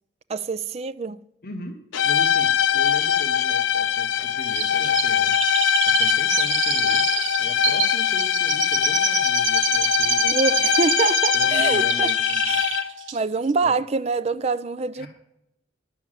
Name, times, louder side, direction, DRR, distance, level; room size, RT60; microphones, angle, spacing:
voice 1, 0.3-1.2 10.2-12.1 12.5-15.1, right 4 dB, 35° right, 0.4 m, -25 dB
voice 2, 1.4-1.8 2.0-10.6 11.3-12.6 12.9-13.1 13.6-13.8 14.9-15.1, left 1 dB, 50° left, 1.0 m, -38 dB
sound 1, 1.9-13.0, left 9 dB, 85° left, 0.6 m, -22 dB
Chirp tweet, 4.6-11.6 11.9-12.8 13.1-13.2, right 8 dB, 75° right, 1.1 m, -26 dB
11.0 x 6.9 x 7.4 m
head